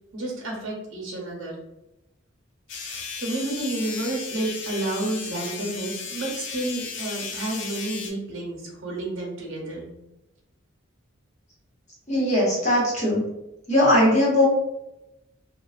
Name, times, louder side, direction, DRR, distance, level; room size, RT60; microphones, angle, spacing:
voice 1, 0.1-1.6 2.7-9.9, right 2 dB, 75° right, -1 dB, 0.7 m, -31 dB
sound 1, 2.7-8.1, left 5 dB, 60° left, 0.4 m, -35 dB
voice 2, 12.1-13.3 13.7-14.5, left 1 dB, 35° left, -6 dB, 0.9 m, -20 dB
2.3 x 2.2 x 2.3 m, 0.90 s
head